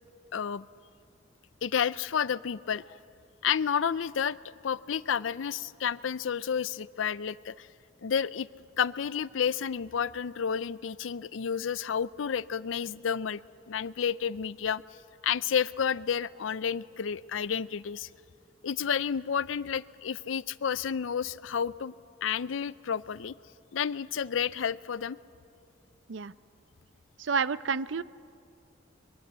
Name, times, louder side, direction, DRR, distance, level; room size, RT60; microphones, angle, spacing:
voice 1, 0.3-0.7 1.6-3.0 3.4-4.4 4.6-7.7 8.0-8.5 8.8-13.4 13.7-14.8 15.2-18.1 18.6-21.9 22.2-23.3 23.7-25.2, left 7 dB, 85° left, 18 dB, 0.5 m, -30 dB
voice 2, 27.2-28.0, right 5 dB, 70° right, 17 dB, 0.5 m, -29 dB
22.5 x 22.0 x 8.1 m, 2.5 s
head